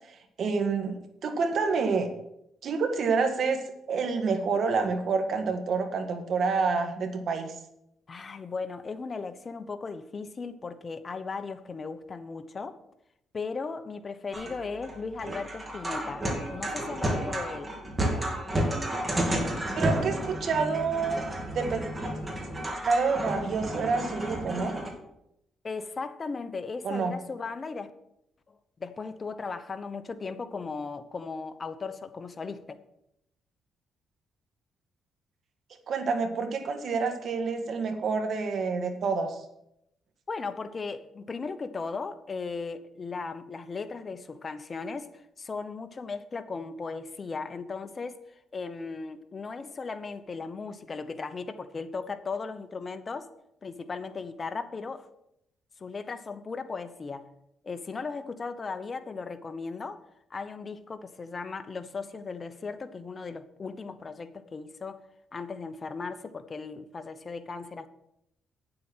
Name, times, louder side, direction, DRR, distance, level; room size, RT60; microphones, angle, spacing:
voice 1, 0.4-1.0 1.2-2.1 2.6-3.6 3.9-7.5 19.8-21.2 21.5-21.8 22.8-24.7 26.8-27.1 35.9-39.4, right 4 dB, 60° right, 1.7 m, -28 dB
voice 2, 8.1-12.8 13.3-17.8 25.6-27.9 28.5-32.8 40.3-53.3 53.6-55.1 55.8-57.3 57.6-60.0 60.3-65.0 65.3-67.9, left 4 dB, 35° left, 1.0 m, -37 dB
sound 1, 14.3-24.9, right 1 dB, 20° right, 2.8 m, -32 dB
9.3 x 7.8 x 6.2 m
cardioid pair, 90°, 0 cm